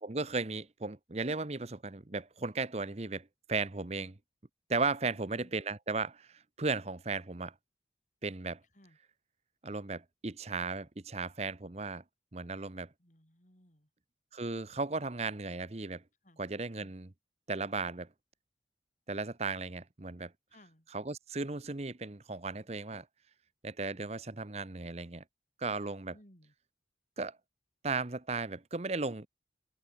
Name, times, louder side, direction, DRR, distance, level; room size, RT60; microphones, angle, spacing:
voice 1, 0.0-4.1 4.7-7.5 8.2-8.6 9.6-12.0 12.3-12.9 14.3-16.0 16.4-17.1 17.5-18.1 19.1-20.3 20.9-23.1 23.6-25.2 25.6-26.1 27.2-27.4 27.8-29.3, right 3 dB, 35° right, 0.9 m, -36 dB
voice 2, 13.0-13.9 16.2-16.4 16.7-16.9 20.5-20.9 26.1-26.5, left 1 dB, 40° left, 6.4 m, -60 dB
head